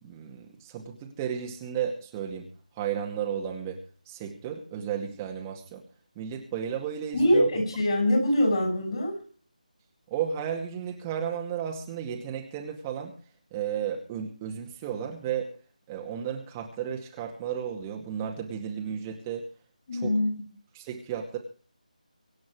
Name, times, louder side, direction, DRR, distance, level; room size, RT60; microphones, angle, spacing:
voice 1, 0.0-2.5 2.7-5.8 6.2-7.6 10.1-13.1 13.5-15.5 15.9-19.5 19.9-20.2 20.7-21.4, right 8 dB, 15° right, 1 dB, 2.2 m, -33 dB
voice 2, 7.1-9.1 19.9-20.4, left 1 dB, 40° left, 4 dB, 6.8 m, -23 dB
25.0 x 8.6 x 4.9 m, 0.42 s
figure-of-eight pair, 160°, 4 cm